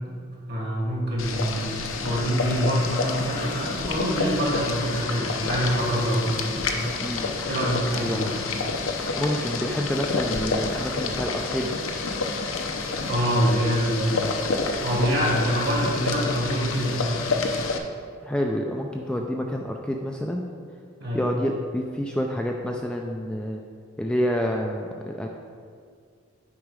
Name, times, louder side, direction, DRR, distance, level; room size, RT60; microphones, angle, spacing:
voice 1, 0.5-6.3 6.7-7.1 7.5-8.3 13.0-14.3 14.8-17.2 21.0-21.2, equal, 50° right, -4 dB, 2.0 m, -25 dB
Boiling, 1.2-17.8, left 3 dB, 80° left, 0.7 m, -29 dB
voice 2, 7.0-7.3 7.9-8.2 9.2-11.8 18.2-20.4 21.1-23.6 24.0-25.3, equal, 5° left, 1 dB, 0.3 m, -28 dB
9.4 x 4.9 x 4.9 m, 2.1 s
head